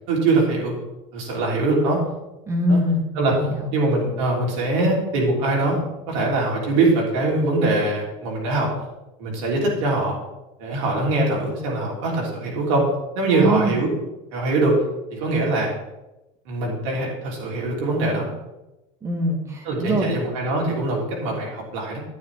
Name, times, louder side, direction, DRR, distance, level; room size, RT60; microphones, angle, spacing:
voice 1, 0.1-0.7 1.1-2.0 2.7-2.8 3.2-3.3 3.7-5.8 6.1-8.7 9.2-10.2 10.6-12.9 13.2-13.9 14.3-14.8 15.1-15.7 16.5-18.3 19.7-22.0, right 2 dB, 80° right, -2 dB, 3.6 m, -22 dB
voice 2, 2.5-3.7 13.3-13.8 19.0-20.1, equal, 15° right, 2 dB, 1.5 m, -23 dB
9.6 x 9.4 x 3.5 m, 0.99 s
cardioid pair, 165°, 16 cm